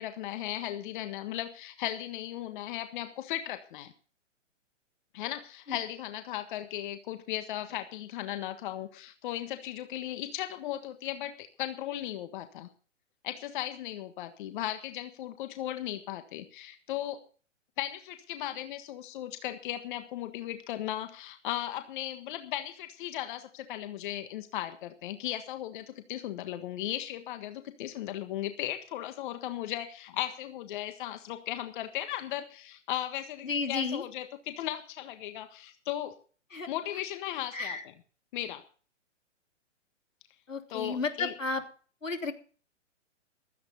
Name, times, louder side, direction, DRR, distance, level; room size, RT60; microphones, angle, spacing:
voice 1, 0.0-3.9 5.1-12.7 13.2-17.2 17.8-36.1 36.7-37.8 38.3-38.6 40.7-41.3, left 13 dB, 40° left, 9 dB, 1.6 m, -36 dB
voice 2, 33.4-34.0 36.5-36.7 37.5-37.8 40.5-41.6 42.0-42.3, left 4 dB, 90° left, 5 dB, 3.2 m, -32 dB
16.5 x 13.5 x 4.1 m, 0.40 s
figure-of-eight pair, 125°, 38 cm